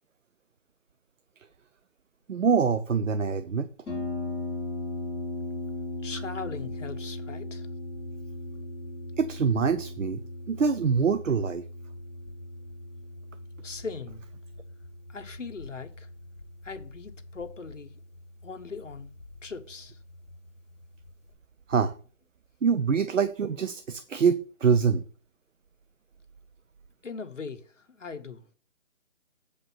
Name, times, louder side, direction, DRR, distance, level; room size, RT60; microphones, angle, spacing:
voice 1, 2.3-3.7 9.2-10.2 10.5-11.6 21.7-21.9 22.6-25.0, right 6 dB, 70° right, 0.8 m, -25 dB
Harp, 3.9-21.3, left 2 dB, ahead, 2.8 m, -39 dB
voice 2, 6.0-7.7 13.6-14.2 15.1-16.1 16.6-18.0 18.4-19.1 19.4-20.0 27.0-28.4, left 5 dB, 65° left, 1.3 m, -39 dB
8.2 x 5.3 x 5.6 m
hypercardioid pair, 180°, 40 cm